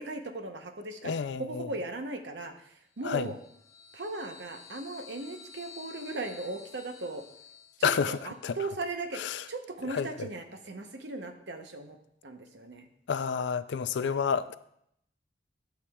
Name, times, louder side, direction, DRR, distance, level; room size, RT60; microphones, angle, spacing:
voice 1, 0.0-2.7 3.0-3.4 3.9-7.2 7.8-9.2 9.5-12.0 12.2-12.9 14.0-14.3, right 2 dB, 75° right, 0.8 m, -38 dB
voice 2, 1.0-1.7 3.0-3.3 7.8-8.6 9.1-9.4 9.9-10.3 13.1-14.6, left 6 dB, 80° left, 0.4 m, -30 dB
sound 1, 2.9-8.4, left 6 dB, 15° left, 0.5 m, -52 dB
11.5 x 6.9 x 2.3 m
head